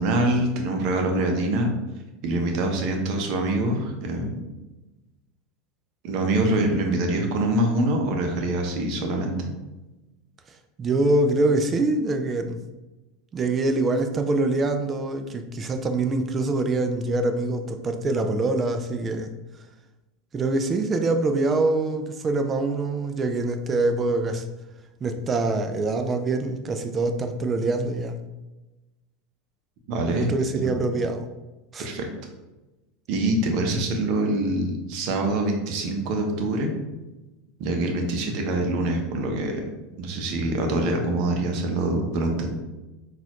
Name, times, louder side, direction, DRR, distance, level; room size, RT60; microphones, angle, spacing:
voice 1, 0.0-1.7 2.2-4.4 6.0-9.5 29.9-30.3 30.6-30.9 31.8-32.1 33.1-36.7 37.6-39.6 40.0-42.5, right 1 dB, 55° right, 3 dB, 0.7 m, -25 dB
voice 2, 10.8-12.6 13.3-19.3 20.3-24.4 25.0-28.2 30.1-31.3 31.7-31.9, right 2 dB, 30° right, 6 dB, 0.4 m, -24 dB
4.0 x 2.4 x 3.0 m, 1.1 s
hypercardioid pair, 95°, 0 cm